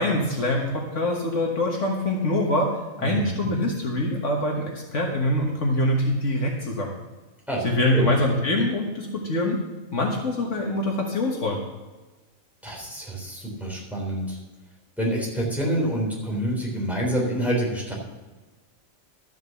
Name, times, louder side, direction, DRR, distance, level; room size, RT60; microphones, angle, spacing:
voice 1, 0.0-6.9 7.6-9.6 9.9-11.6, left 1 dB, 65° left, 0 dB, 1.7 m, -24 dB
voice 2, 3.0-3.5 7.5-8.1 12.6-14.4 15.0-17.9, right 1 dB, ahead, -4 dB, 3.4 m, -27 dB
12.5 x 5.8 x 6.9 m, 1.2 s
omnidirectional pair, 1.4 m